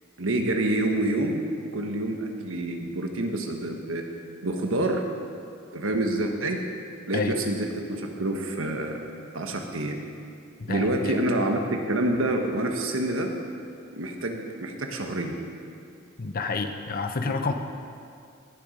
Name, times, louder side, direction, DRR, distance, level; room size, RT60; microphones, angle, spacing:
voice 1, 0.2-1.4 1.7-4.0 4.4-5.0 5.7-6.6 7.1-9.0 9.3-10.0 10.7-13.3 13.9-15.4 17.3-17.4, right 1 dB, 80° right, 3 dB, 1.3 m, -27 dB
voice 2, 10.6-11.1 16.2-17.5, left 4 dB, 45° left, 6 dB, 0.7 m, -29 dB
17.5 x 7.1 x 5.1 m, 2.4 s
head